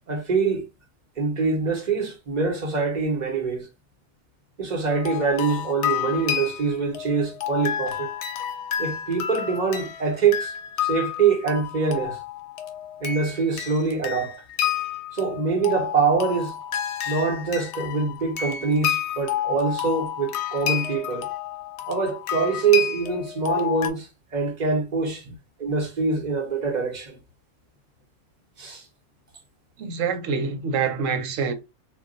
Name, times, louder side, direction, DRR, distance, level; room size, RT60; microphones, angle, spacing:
voice 1, 0.1-0.7 1.2-3.7 4.6-8.1 8.8-12.2 13.0-14.4 15.1-16.6 17.1-21.3 21.9-25.2 25.6-27.2 28.6-28.8, right 5 dB, 40° right, 0.9 m, -24 dB
sound 1, 4.9-23.9, left 10 dB, 70° left, 0.8 m, -30 dB
voice 2, 29.8-31.5, right 5 dB, 85° right, 1.0 m, -26 dB
2.3 x 2.2 x 3.8 m
omnidirectional pair, 1.3 m